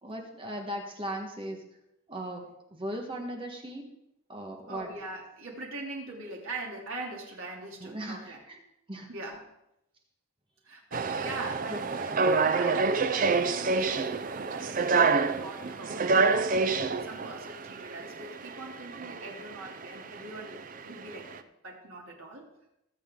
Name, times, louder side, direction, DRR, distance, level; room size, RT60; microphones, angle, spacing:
voice 1, 0.0-1.6 2.1-2.4 2.7-3.9 4.3-4.9 7.8-8.6 8.9-9.1 11.7-11.8 15.9-16.0, right 1 dB, 25° right, 2 dB, 1.5 m, -37 dB
voice 2, 4.7-8.4 9.1-9.4 10.6-22.4, right 2 dB, 75° right, -1 dB, 3.1 m, -42 dB
sound 1, 10.9-21.4, right 4 dB, 40° right, 0.5 m, -28 dB
21.0 x 7.7 x 3.8 m, 0.85 s
head